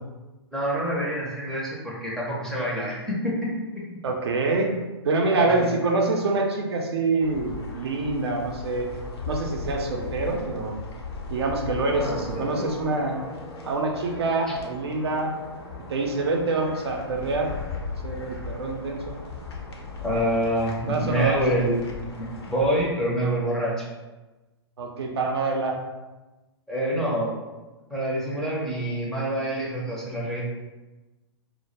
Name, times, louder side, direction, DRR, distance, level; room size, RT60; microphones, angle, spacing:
voice 1, 0.5-3.8 5.4-5.5 12.0-12.6 20.0-21.7 22.2-23.9 26.7-27.3 27.9-30.5, right 1 dB, 5° left, -6 dB, 0.5 m, -26 dB
voice 2, 4.0-4.7 5.0-8.9 9.3-10.8 11.3-13.2 13.6-15.3 15.9-17.5 18.0-19.2 20.8-21.4 24.8-25.8, right 3 dB, 70° right, 2 dB, 0.5 m, -26 dB
sound 1, 7.2-22.8, left 3 dB, 65° left, 0.6 m, -37 dB
2.1 x 2.0 x 3.0 m, 1.1 s
figure-of-eight pair, 120°, 14 cm